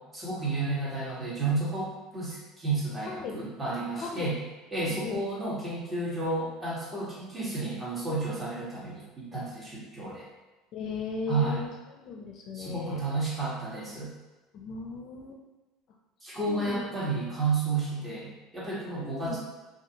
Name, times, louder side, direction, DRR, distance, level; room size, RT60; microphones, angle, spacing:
voice 1, 0.1-4.4 4.7-10.2 11.3-11.6 12.5-14.1 16.2-19.4, right 3 dB, 20° right, -7 dB, 1.2 m, -31 dB
voice 2, 3.0-3.4 4.0-4.3 4.8-5.2 10.7-13.0 14.5-15.4 16.5-16.9 19.0-19.4, left 4 dB, 55° left, 0 dB, 0.4 m, -37 dB
2.5 x 2.5 x 2.8 m, 1.2 s
hypercardioid pair, 85°, 0 cm